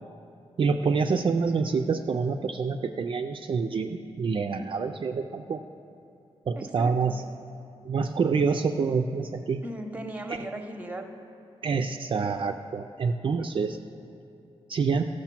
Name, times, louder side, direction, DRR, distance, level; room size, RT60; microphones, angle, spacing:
voice 1, 0.6-5.6 6.5-7.2 7.8-9.6 11.6-13.8 14.7-15.1, right 5 dB, 50° right, 4 dB, 0.4 m, -27 dB
voice 2, 6.6-7.2 9.6-11.1, right 1 dB, 15° right, 6 dB, 0.8 m, -37 dB
13.5 x 6.4 x 5.9 m, 2.8 s
wide cardioid pair, 105°, 11 cm